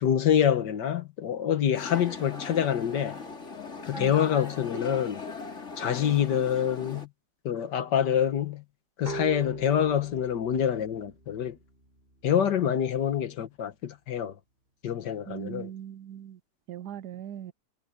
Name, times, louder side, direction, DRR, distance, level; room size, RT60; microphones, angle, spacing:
voice 1, 0.0-3.2 3.9-5.2 5.8-7.1 7.5-8.6 9.0-11.6 12.2-14.3 14.8-15.7, left 9 dB, 75° left, 1.8 m, -26 dB
sound 1, 1.7-7.1, left 3 dB, 40° left, 2.9 m, -39 dB
sound 2, 9.1-12.5, right 4 dB, 35° right, 5.3 m, -43 dB
voice 2, 15.3-16.4 16.7-17.5, right 10 dB, 70° right, 1.2 m, -39 dB
omnidirectional pair, 1.9 m